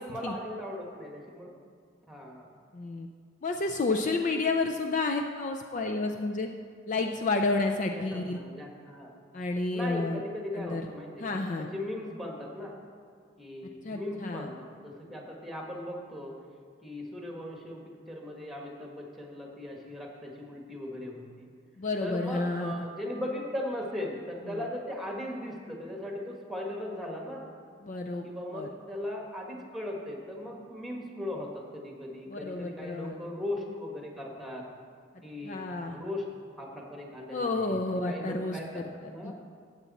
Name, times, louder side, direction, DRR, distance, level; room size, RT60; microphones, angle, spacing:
voice 1, 0.0-1.5 2.1-2.5 7.9-9.1 9.7-12.7 13.4-16.3 16.8-17.8 18.1-21.5 22.0-27.4 28.2-34.6 35.2-35.6 35.9-36.2 36.6-39.3, left 1 dB, ahead, -1 dB, 1.5 m, -38 dB
voice 2, 2.7-3.1 3.4-6.5 6.9-8.4 9.3-10.2 10.5-10.9 11.2-11.7 13.8-14.5 21.8-22.7 24.5-24.6 27.8-28.2 28.5-28.7 32.3-33.1 35.4-36.0 37.3-39.3, left 3 dB, 40° left, 4 dB, 0.4 m, -30 dB
14.0 x 8.1 x 4.1 m, 2.1 s
head